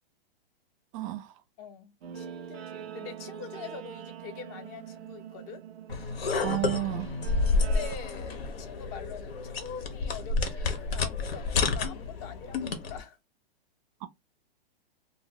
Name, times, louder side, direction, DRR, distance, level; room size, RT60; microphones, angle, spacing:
voice 1, 0.9-1.3 6.4-7.1, right 16 dB, 35° right, 0.5 m, -31 dB
voice 2, 1.6-5.6 7.6-13.2, left 7 dB, 30° left, 0.6 m, -44 dB
Guitar, 2.0-8.0, right 9 dB, 85° right, 0.5 m, -43 dB
sound 1, 5.9-13.0, left 3 dB, 80° left, 1.0 m, -30 dB
2.7 x 2.1 x 3.9 m
hypercardioid pair, 135°, 30 cm